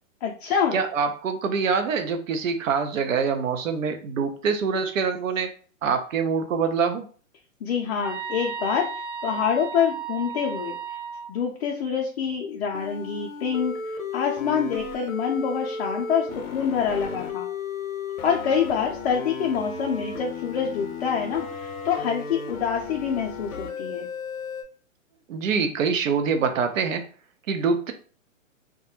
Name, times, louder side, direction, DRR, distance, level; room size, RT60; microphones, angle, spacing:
voice 1, 0.2-0.8 7.6-8.9 9.2-10.7 11.3-13.7 14.1-17.5 18.2-24.1, left 7 dB, 50° left, 0 dB, 0.5 m, -26 dB
voice 2, 0.7-5.5 5.8-7.1 25.3-27.1 27.5-27.9, right 5 dB, 70° right, 7 dB, 0.6 m, -25 dB
sound 1, 8.0-11.3, right 6 dB, 30° right, 0.6 m, -34 dB
sound 2, 12.7-24.6, left 4 dB, 80° left, 0.7 m, -34 dB
2.3 x 2.1 x 2.9 m, 0.41 s
hypercardioid pair, 155°, 41 cm